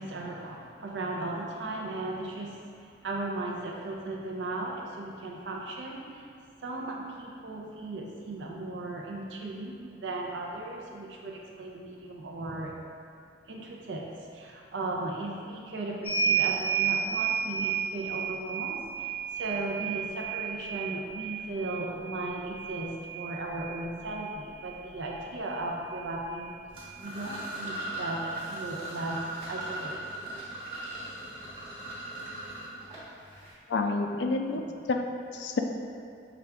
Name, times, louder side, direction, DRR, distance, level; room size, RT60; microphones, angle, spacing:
voice 1, 0.0-2.6 3.0-6.3 6.6-12.7 13.5-26.5 27.0-29.2 29.5-30.1, right 2 dB, 90° right, -1 dB, 0.6 m, -36 dB
sound 1, 16.0-24.2 25.4-25.5 25.8-26.9, right 7 dB, 10° right, 0.9 m, -32 dB
sound 2, 26.7-33.5, right 2 dB, 30° right, 1.2 m, -38 dB
voice 2, 33.7-34.6 34.9-35.1 35.3-35.6, left 3 dB, 75° left, 4 dB, 0.4 m, -28 dB
5.7 x 2.5 x 3.4 m, 2.3 s
head